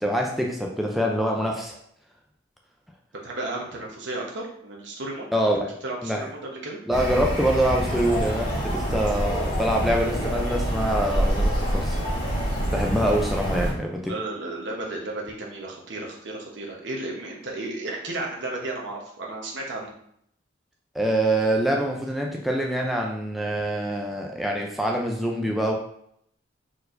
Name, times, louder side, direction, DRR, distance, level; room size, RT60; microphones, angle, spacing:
voice 1, 0.0-1.8 5.3-5.6 6.0-6.3 6.9-12.0 12.7-14.1 20.9-25.7, right 1 dB, ahead, -1 dB, 0.4 m, -25 dB
voice 2, 3.2-5.3 5.8-6.8 14.1-19.9, right 2 dB, 60° right, -1 dB, 1.0 m, -33 dB
sound 1, 6.9-13.7, equal, 40° left, 1.7 m, -26 dB
4.4 x 4.3 x 2.6 m, 0.69 s
head